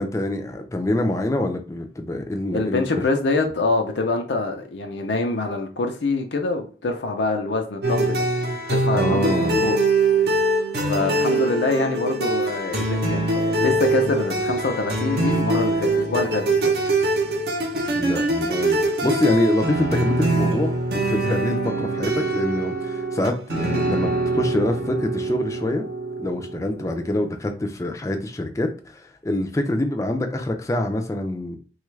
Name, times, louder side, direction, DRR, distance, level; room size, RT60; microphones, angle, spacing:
voice 1, 0.0-2.8 9.0-9.6 18.0-25.8 26.2-31.6, left 1 dB, 15° left, 0.4 m, -25 dB
voice 2, 2.5-8.3 8.7-9.3 9.6-9.8 10.3-10.4 10.9-16.7, left 3 dB, 85° left, 0.5 m, -25 dB
sound 1, 7.8-27.2, right 2 dB, 65° right, 0.7 m, -23 dB
3.3 x 2.3 x 3.1 m
head